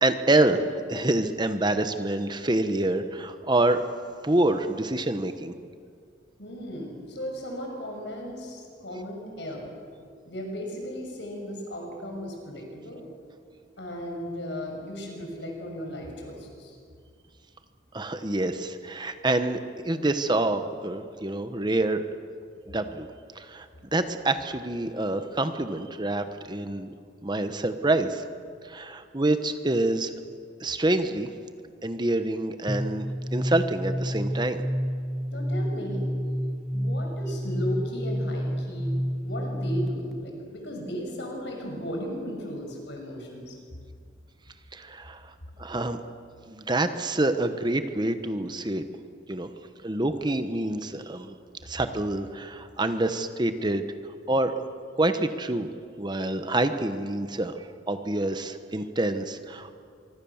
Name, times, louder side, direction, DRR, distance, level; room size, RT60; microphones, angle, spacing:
voice 1, 0.0-3.8 4.2-5.5 17.9-22.0 22.7-23.1 23.3-23.7 23.9-26.9 27.2-28.2 28.6-30.1 30.6-31.3 31.8-33.1 33.3-34.6 44.7-46.0 46.4-48.8 49.3-49.5 49.8-51.4 51.6-53.8 54.3-54.7 55.0-55.7 56.0-59.7, right 2 dB, 25° right, 9 dB, 1.1 m, -27 dB
voice 2, 6.4-9.7 10.3-13.1 13.8-16.8 35.3-36.1 36.7-38.9 39.2-43.6, equal, 65° left, 1 dB, 6.4 m, -36 dB
sound 1, 32.7-40.2, equal, ahead, 1.3 m, -29 dB
25.0 x 24.5 x 7.3 m, 2.2 s
head